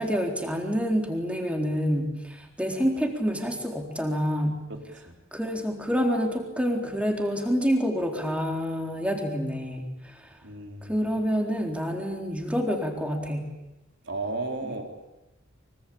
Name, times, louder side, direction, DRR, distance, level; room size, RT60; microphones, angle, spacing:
voice 1, 0.0-4.6 5.3-10.3 10.8-13.4, equal, 5° right, 3 dB, 3.9 m, -27 dB
voice 2, 10.4-11.1 14.0-14.9, right 2 dB, 60° right, 4 dB, 4.0 m, -34 dB
24.5 x 24.5 x 8.7 m, 0.94 s
head